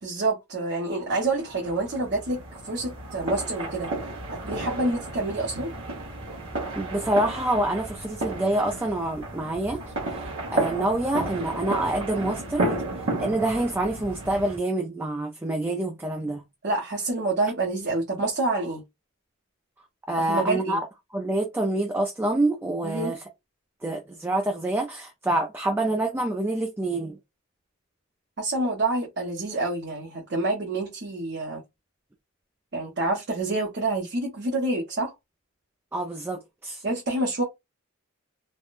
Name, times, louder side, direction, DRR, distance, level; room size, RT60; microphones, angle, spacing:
voice 1, 0.0-3.9 4.5-5.7 16.6-18.8 20.3-20.8 22.8-23.1 28.4-31.6 32.7-35.1 36.8-37.4, right 2 dB, 55° right, 0.9 m, -27 dB
sound 1, 1.1-14.6, right 2 dB, 75° right, 1.2 m, -33 dB
voice 2, 6.8-12.8 13.2-16.4 20.1-20.9 21.1-23.2 23.8-27.2 35.9-36.8, right 1 dB, 10° right, 0.4 m, -27 dB
3.5 x 2.2 x 2.5 m
head